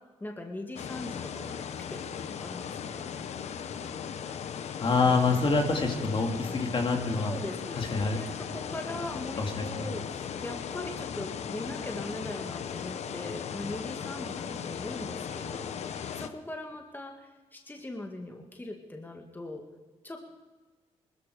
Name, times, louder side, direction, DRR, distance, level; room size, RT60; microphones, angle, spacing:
voice 1, 0.2-3.0 7.2-7.8 8.2-19.6 20.0-20.3, left 1 dB, 15° left, 2 dB, 2.0 m, -40 dB
sound 1, 0.8-16.3, left 7 dB, 65° left, 1.0 m, -37 dB
voice 2, 4.8-7.3 7.7-8.2 9.4-9.9, left 4 dB, 45° left, 3 dB, 2.6 m, -26 dB
21.0 x 13.5 x 5.0 m, 1.3 s
cardioid pair, 70°, 12 cm